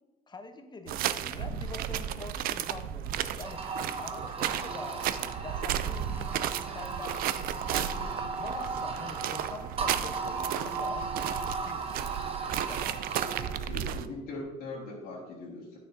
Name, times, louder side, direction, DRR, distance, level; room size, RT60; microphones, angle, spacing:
voice 1, 0.3-3.6 4.0-6.3 6.6-7.5 7.8-12.2 12.5-13.0 14.1-14.2, left 3 dB, 25° left, 7 dB, 0.8 m, -45 dB
sound 1, 0.9-14.1, right 10 dB, 60° right, 0.4 m, -34 dB
sound 2, 3.4-13.6, right 4 dB, 35° right, 0.9 m, -36 dB
voice 2, 13.4-15.8, left 2 dB, 65° left, -7 dB, 1.9 m, -40 dB
9.3 x 6.4 x 2.7 m, 1.1 s
supercardioid pair, 95°, 17 cm